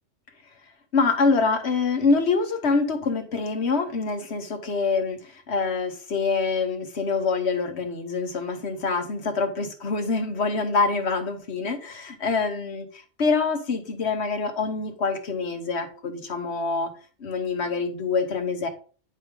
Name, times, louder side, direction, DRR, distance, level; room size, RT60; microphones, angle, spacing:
voice 1, 0.9-12.9 13.2-16.9 17.2-18.7, left 4 dB, 65° left, 7 dB, 1.4 m, -25 dB
9.7 x 4.7 x 3.7 m, 0.39 s
omnidirectional pair, 1.2 m